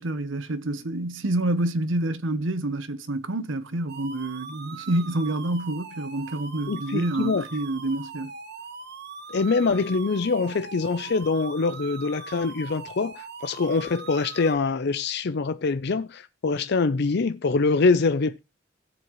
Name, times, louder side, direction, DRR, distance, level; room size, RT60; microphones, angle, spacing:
voice 1, 0.0-8.3, right 1 dB, 75° right, 1.0 m, -28 dB
sound 1, 3.9-14.6, right 5 dB, 55° right, 1.4 m, -41 dB
voice 2, 6.7-7.4 9.3-18.4, left 4 dB, 60° left, 0.5 m, -24 dB
17.0 x 7.4 x 3.1 m
head